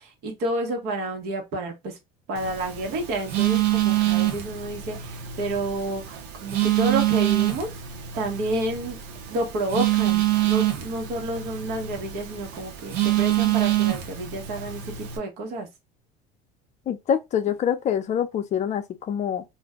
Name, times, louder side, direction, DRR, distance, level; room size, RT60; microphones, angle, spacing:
voice 1, 0.0-2.0 2.3-7.7 8.1-9.0 9.3-15.7, right 2 dB, 65° right, 1.2 m, -30 dB
Telephone, 2.4-15.2, right 15 dB, 80° right, 0.8 m, -26 dB
voice 2, 16.9-19.4, left 8 dB, 40° left, 0.5 m, -25 dB
2.5 x 2.2 x 3.4 m
supercardioid pair, 105°, 18 cm